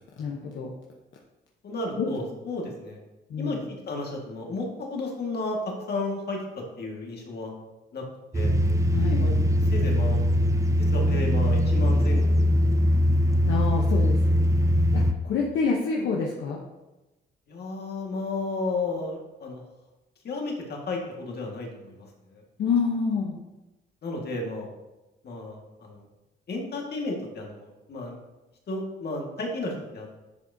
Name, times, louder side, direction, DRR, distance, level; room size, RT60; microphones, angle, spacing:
voice 1, 0.2-0.7 2.0-2.1 3.3-3.6 8.9-9.2 13.5-14.2 14.9-16.6 22.6-23.4, left 5 dB, 70° left, -1 dB, 1.0 m, -27 dB
voice 2, 1.6-3.0 3.4-3.6 3.9-5.6 5.9-7.5 7.9-8.0 8.3-8.6 9.2-9.4 9.7-10.2 10.8-12.7 17.5-19.6 20.2-22.4 24.0-24.7 25.2-26.0 26.5-28.2 28.7-30.1, left 2 dB, 55° left, 0 dB, 1.8 m, -33 dB
sound 1, 8.3-15.1, equal, 15° right, 0.5 m, -21 dB
10.5 x 5.0 x 2.7 m, 1.1 s
cardioid pair, 90°, 20 cm